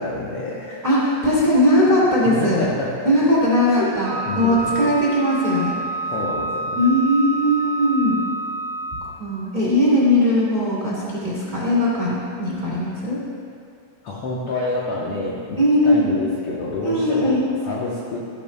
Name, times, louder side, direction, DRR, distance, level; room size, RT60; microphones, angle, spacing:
voice 1, 0.0-0.8 2.2-3.1 3.7-4.8 6.1-6.8 14.0-18.2, left 2 dB, 70° left, -4 dB, 1.4 m, -28 dB
voice 2, 0.8-2.7 3.0-5.8 6.7-8.2 9.2-13.2 15.6-16.1 16.8-17.5, left 1 dB, 15° right, -8 dB, 1.8 m, -19 dB
Wind instrument woodwind instrument, 4.0-9.2, right 2 dB, 85° right, 2.5 m, -28 dB
15.5 x 11.0 x 2.2 m, 2.4 s
omnidirectional pair, 4.0 m